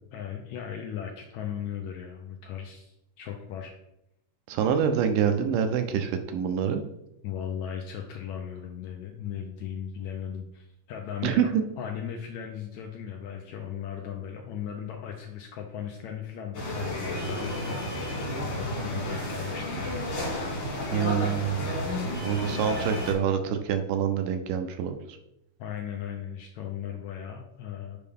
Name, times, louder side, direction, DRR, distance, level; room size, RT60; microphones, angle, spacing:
voice 1, 0.1-3.7 7.2-11.5 11.8-20.2 25.6-28.0, left 8 dB, 80° left, 2 dB, 1.7 m, -37 dB
voice 2, 4.5-6.8 11.2-11.6 20.9-21.9 22.2-25.0, right 8 dB, 80° right, 7 dB, 2.2 m, -26 dB
sound 1, 16.5-23.1, left 1 dB, 60° left, 3.1 m, -32 dB
6.7 x 5.2 x 3.5 m, 0.83 s
omnidirectional pair, 3.8 m